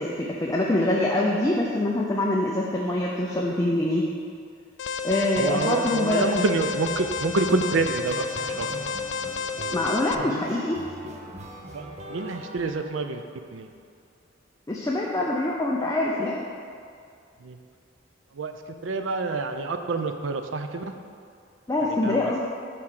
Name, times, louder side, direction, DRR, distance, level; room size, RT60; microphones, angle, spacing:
voice 1, 0.0-4.0 5.0-6.4 9.7-10.8 14.7-16.5 21.7-22.4, left 1 dB, 15° left, -3 dB, 0.5 m, -24 dB
Alarm, 4.8-10.1, left 5 dB, 70° left, 0.3 m, -31 dB
sound 1, 5.4-5.8 6.3-13.5, right 1 dB, 35° right, 0.7 m, -42 dB
voice 2, 5.4-8.2 8.6-8.7 10.2-10.3 11.7-13.2 13.5-13.7 17.5-17.6 18.4-18.5 18.8-20.8 22.0-22.4, right 3 dB, 80° right, 7 dB, 0.5 m, -27 dB
5.9 x 4.6 x 6.5 m, 2.3 s
head